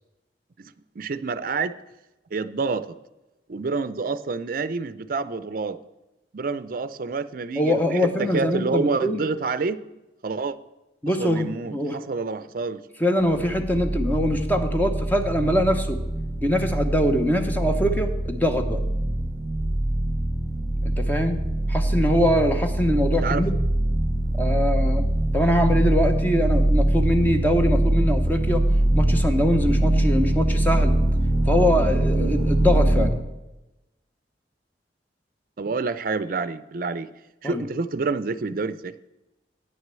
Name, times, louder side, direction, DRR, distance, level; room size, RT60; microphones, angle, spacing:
voice 1, 0.6-1.7 2.3-3.0 3.5-5.8 6.3-9.8 10.2-10.6 11.2-12.8 23.2-23.4 35.6-37.1 37.4-38.9, right 4 dB, 50° right, 14 dB, 0.5 m, -28 dB
voice 2, 7.6-9.2 11.0-12.0 13.0-16.0 16.4-18.8 21.0-21.4 21.7-23.6 24.4-25.0 25.3-28.6 28.9-30.9 31.5-33.1 37.4-37.6, equal, 10° left, 6 dB, 0.8 m, -23 dB
sound 1, 13.2-33.1, right 1 dB, 25° right, 1.4 m, -23 dB
9.2 x 6.4 x 7.5 m, 1.0 s
head